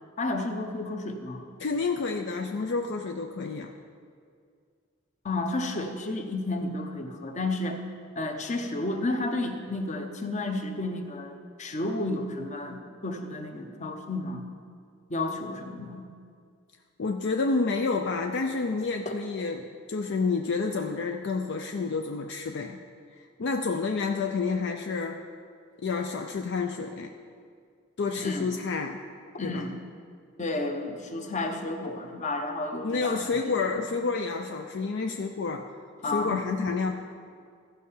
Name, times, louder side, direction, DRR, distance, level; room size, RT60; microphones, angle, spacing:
voice 1, 0.2-1.4 5.2-7.8 8.2-14.5 15.1-16.1 19.1-19.2 28.2-28.6 29.3-29.7 30.4-33.7 36.0-36.4, left 2 dB, 35° left, 5 dB, 0.9 m, -32 dB
voice 2, 1.6-3.7 17.0-22.8 23.4-25.2 25.8-27.1 28.0-29.0 29.4-29.6 32.8-35.7 36.0-36.9, left 4 dB, 60° left, 4 dB, 0.5 m, -29 dB
15.0 x 5.5 x 5.6 m, 2.2 s
head